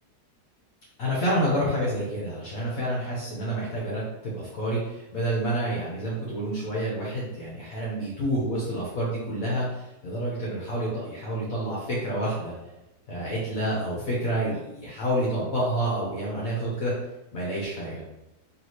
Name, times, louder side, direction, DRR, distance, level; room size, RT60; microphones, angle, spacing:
voice 1, 1.0-12.5 13.1-16.9 17.3-18.0, right 1 dB, 60° left, -5 dB, 1.3 m, -28 dB
3.2 x 3.1 x 4.1 m, 0.96 s
omnidirectional pair, 1.7 m